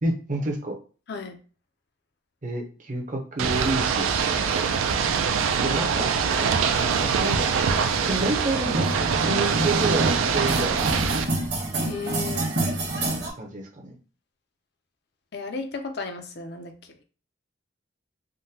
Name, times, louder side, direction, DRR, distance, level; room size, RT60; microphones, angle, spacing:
voice 1, 0.0-0.8 2.4-4.1 5.6-6.1 7.0-10.8 13.4-14.0, right 2 dB, 40° right, 2 dB, 0.6 m, -29 dB
Ocean / Boat Water vehicle, 3.4-11.2, right 6 dB, 85° right, 0.4 m, -24 dB
sound 1, 5.3-13.3, right 2 dB, 55° right, 1.1 m, -30 dB
voice 2, 11.9-12.5 15.3-16.7, left 4 dB, 55° left, 6 dB, 0.4 m, -34 dB
3.6 x 2.1 x 2.7 m, 0.38 s
head